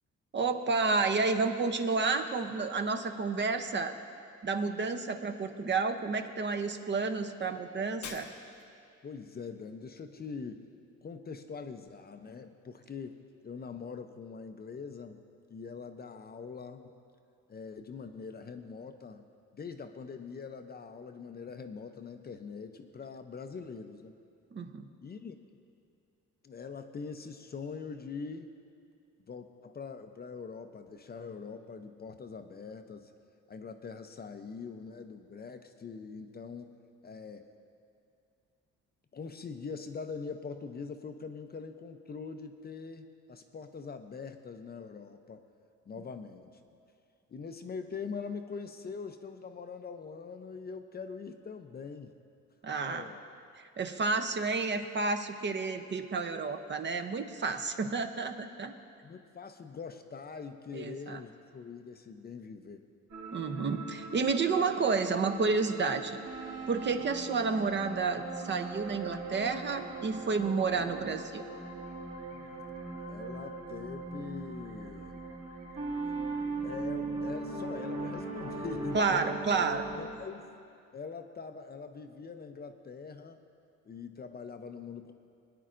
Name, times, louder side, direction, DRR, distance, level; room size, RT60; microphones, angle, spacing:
voice 1, 0.3-3.9 4.4-8.3 24.5-24.9 52.6-53.1 53.6-58.7 60.7-61.2 63.3-66.2 66.7-71.4 78.9-79.9, right 4 dB, 40° right, 7 dB, 0.7 m, -30 dB
Shatter, 8.0-8.8, left 5 dB, 90° left, 1.0 m, -45 dB
voice 2, 9.0-10.7 11.0-15.2 15.5-16.9 17.5-19.2 19.5-24.1 25.0-25.4 26.4-28.5 29.3-33.1 33.5-36.8 37.0-37.5 39.1-45.4 45.9-46.6 47.3-52.1 52.8-53.2 59.0-62.8 72.3-72.5 73.1-75.2 76.1-76.2 76.6-79.3 79.9-80.5 80.9-83.4 83.9-85.1, left 5 dB, 30° left, 7 dB, 0.5 m, -43 dB
sound 1, 63.1-80.0, right 3 dB, 65° right, 2.9 m, -39 dB
23.5 x 9.2 x 2.5 m, 2.4 s
cardioid pair, 90°, 30 cm